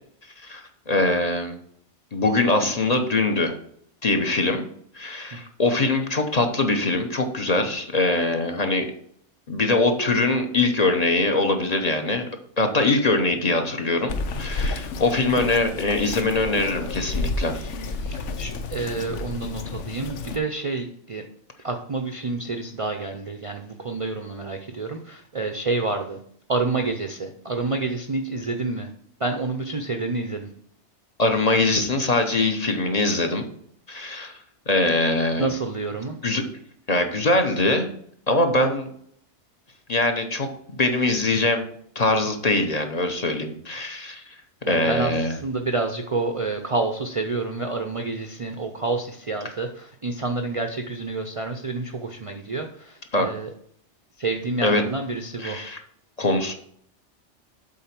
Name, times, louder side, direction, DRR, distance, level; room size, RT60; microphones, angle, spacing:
voice 1, 0.4-1.6 2.1-3.6 4.0-4.6 4.9-8.9 9.5-12.3 12.6-17.7 31.2-33.5 33.9-34.4 34.7-35.5 36.2-36.4 36.9-37.9 38.3-38.9 39.9-41.6 41.9-44.2 44.7-45.3 53.1-53.3 54.6-54.8 55.4-55.8 56.2-56.5, left 2 dB, 40° left, 5 dB, 0.9 m, -22 dB
Bird vocalization bird call bird song, 14.1-20.4, left 3 dB, 85° left, 1.1 m, -31 dB
voice 2, 18.0-21.3 21.6-26.2 26.5-28.9 29.2-30.5 35.4-36.2 44.7-53.5 54.2-55.6, right 3 dB, 40° right, 5 dB, 0.5 m, -28 dB
7.7 x 3.9 x 5.9 m, 0.65 s
omnidirectional pair, 1.2 m